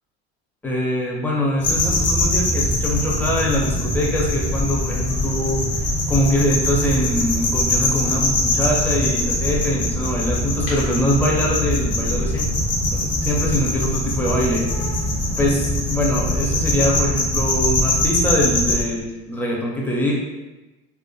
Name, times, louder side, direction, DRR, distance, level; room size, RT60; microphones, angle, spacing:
voice 1, 0.6-5.6 6.1-12.5 12.9-14.6 15.4-20.1, left 1 dB, 5° left, -3 dB, 0.5 m, -23 dB
sound 1, 1.6-18.8, left 1 dB, 45° left, 0.7 m, -22 dB
2.4 x 2.4 x 2.3 m, 1.1 s
hypercardioid pair, 75°, 33 cm